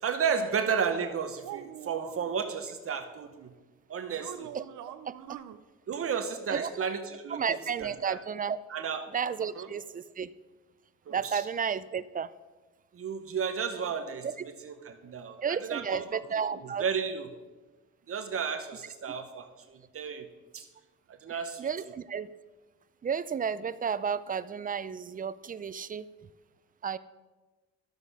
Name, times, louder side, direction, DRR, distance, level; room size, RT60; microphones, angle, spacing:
voice 1, 0.0-3.5 3.9-4.5 5.9-8.2 8.7-9.0 9.4-9.7 11.1-11.4 12.9-16.2 16.5-17.3 18.1-20.3 20.5-20.7 21.1-21.7, right 6 dB, 50° right, 7 dB, 1.0 m, -33 dB
sound 1, 1.0-2.3 4.1-5.6, right 11 dB, 80° right, 0.6 m, -43 dB
voice 2, 7.3-8.6 9.1-10.3 11.1-12.3 14.2-14.3 15.4-16.8 21.6-22.3 23.0-26.1 26.8-27.0, right 7 dB, 30° right, 16 dB, 0.4 m, -32 dB
12.5 x 7.7 x 4.8 m, 1.2 s
cardioid pair, 90°, 30 cm